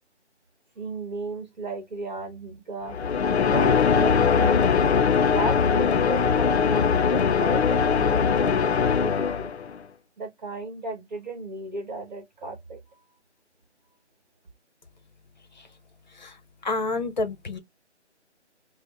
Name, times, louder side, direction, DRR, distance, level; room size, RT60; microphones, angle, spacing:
voice 1, 0.8-3.0 3.5-4.7 5.2-9.5 10.2-12.8, right 3 dB, 40° right, 1.1 m, -35 dB
sound 1, 2.9-9.8, left 6 dB, 65° left, 0.5 m, -21 dB
voice 2, 16.1-17.6, left 3 dB, 40° left, 0.9 m, -30 dB
5.0 x 2.1 x 3.1 m
figure-of-eight pair, 160°, 35 cm